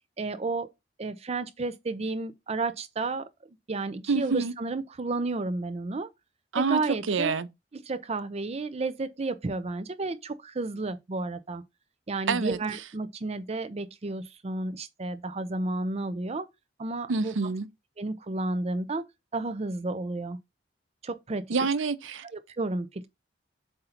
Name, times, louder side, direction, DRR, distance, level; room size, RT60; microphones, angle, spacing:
voice 1, 0.2-0.7 1.0-3.3 3.7-6.1 6.6-7.3 7.7-11.6 12.1-16.5 16.8-17.3 18.0-19.0 19.3-20.4 21.0-21.5 22.3-23.1, right 3 dB, 35° right, 0.5 m, -32 dB
voice 2, 4.1-4.5 6.5-6.8 7.1-7.5 12.3-12.6 17.1-17.7 21.5-22.3, right 4 dB, 85° right, 0.6 m, -27 dB
7.7 x 2.8 x 5.7 m
head